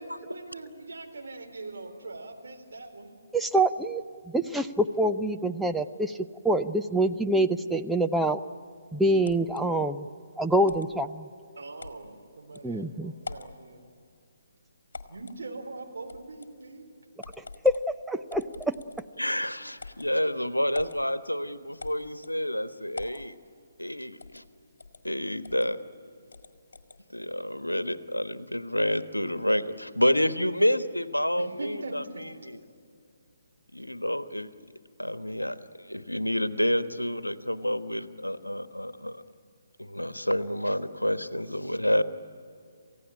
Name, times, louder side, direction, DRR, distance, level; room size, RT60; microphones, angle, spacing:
voice 1, 0.0-3.1 11.6-13.9 15.1-16.9 31.4-32.2, right 3 dB, 60° right, 3 dB, 3.8 m, -42 dB
voice 2, 3.3-6.2 6.4-8.4 8.9-10.1 10.4-11.3 12.6-13.1 17.6-17.8 18.1-18.7, right 1 dB, ahead, 6 dB, 0.6 m, -25 dB
sound 1, 9.2-9.6 10.7-10.9 11.8-12.0 12.5-12.6 13.2-13.6 14.9-15.4 16.1-16.5 17.2-17.9 18.3-19.2 19.8-20.1 20.7-21.0 21.8-22.4 22.9-23.3 24.2-24.5 24.8-25.0 25.4-25.7 26.3-27.0, left 4 dB, 55° left, 1.9 m, -43 dB
voice 3, 19.2-23.3 23.8-24.4 25.0-25.8 27.1-32.6 33.7-34.5 35.0-39.2 39.8-42.0, equal, 85° left, 12 dB, 1.2 m, -29 dB
28.5 x 16.0 x 10.0 m, 2.5 s
figure-of-eight pair, 140°, 0 cm